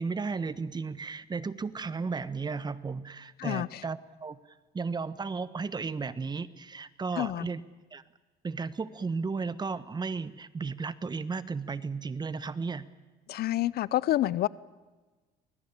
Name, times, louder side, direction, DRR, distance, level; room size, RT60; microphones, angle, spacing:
voice 1, 0.0-4.4 4.7-7.6 7.9-8.0 8.4-12.9, right 4 dB, 25° right, 1.2 m, -34 dB
voice 2, 3.4-3.8 7.2-7.5 13.3-14.5, left 14 dB, 65° left, 0.7 m, -28 dB
24.0 x 21.0 x 8.8 m
cardioid pair, 110°, 17 cm